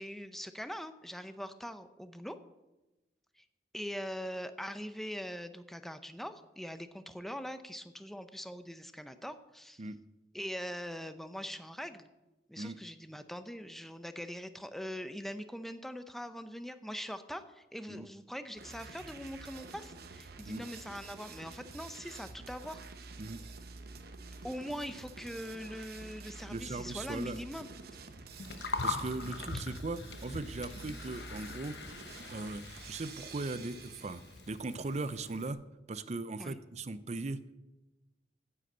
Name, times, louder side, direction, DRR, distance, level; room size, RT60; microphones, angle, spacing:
voice 1, 0.0-2.4 3.4-3.5 3.7-9.8 10.3-12.1 12.5-22.8 24.4-27.7 36.4-36.6, equal, ahead, 10 dB, 0.6 m, -42 dB
sound 1, 18.6-34.5, right 3 dB, 60° right, 0.9 m, -49 dB
voice 2, 26.5-27.4 28.8-31.8 32.3-35.6 35.9-37.4, right 3 dB, 40° right, 14 dB, 0.6 m, -39 dB
Gurgling, 28.3-35.5, left 3 dB, 70° left, 1.1 m, -42 dB
9.7 x 7.7 x 7.8 m, 1.0 s
head